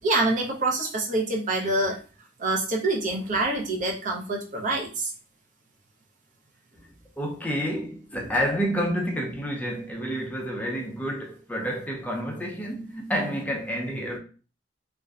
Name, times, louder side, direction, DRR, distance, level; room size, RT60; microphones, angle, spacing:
voice 1, 0.0-2.0 2.4-5.1, right 2 dB, 45° right, 0.6 m, -26 dB
voice 2, 7.2-14.2, equal, 10° left, 0.5 m, -29 dB
2.5 x 2.1 x 2.4 m
head